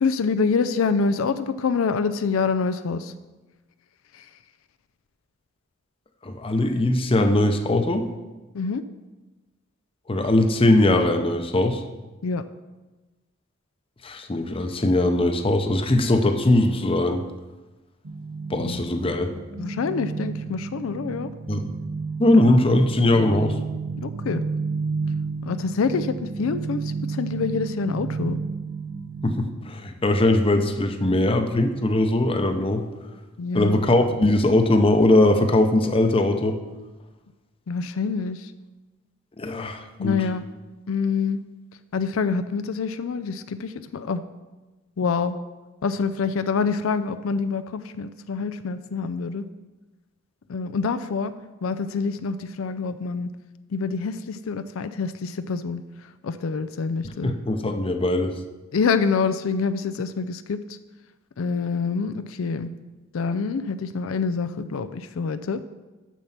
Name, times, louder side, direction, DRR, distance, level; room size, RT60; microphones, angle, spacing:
voice 1, 0.0-3.1 4.2-4.3 8.5-8.8 12.2-12.4 18.6-18.9 19.6-21.3 24.0-24.4 25.4-28.4 33.4-33.9 37.7-38.5 40.0-40.5 40.9-41.4 41.9-44.2 45.0-45.3 45.8-49.4 50.5-51.3 51.6-53.3 53.7-55.8 56.2-57.3 58.7-60.6 61.4-62.7 63.1-65.6, left 5 dB, 85° left, 11 dB, 0.4 m, -26 dB
voice 2, 6.2-8.0 10.1-11.8 14.0-17.2 18.5-19.3 21.5-21.6 22.2-23.5 29.2-32.8 33.5-36.6 39.4-40.2 57.2-58.4, left 1 dB, 25° left, 6 dB, 0.7 m, -20 dB
sound 1, 18.0-29.3, right 4 dB, 80° right, 0.7 m, -31 dB
7.4 x 6.7 x 5.8 m, 1.2 s
head